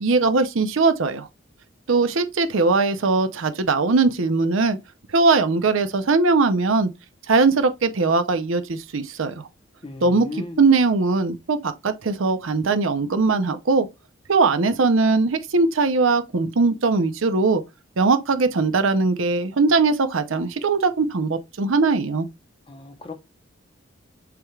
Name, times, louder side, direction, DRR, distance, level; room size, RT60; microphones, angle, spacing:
voice 1, 0.0-1.3 1.9-4.8 5.1-6.9 7.3-9.3 10.0-10.3 10.6-13.9 14.3-17.6 18.0-22.3, right 3 dB, 80° right, 0.6 m, -20 dB
voice 2, 9.8-10.6 22.7-23.1, left 2 dB, 25° left, 0.7 m, -36 dB
6.8 x 2.3 x 3.2 m
head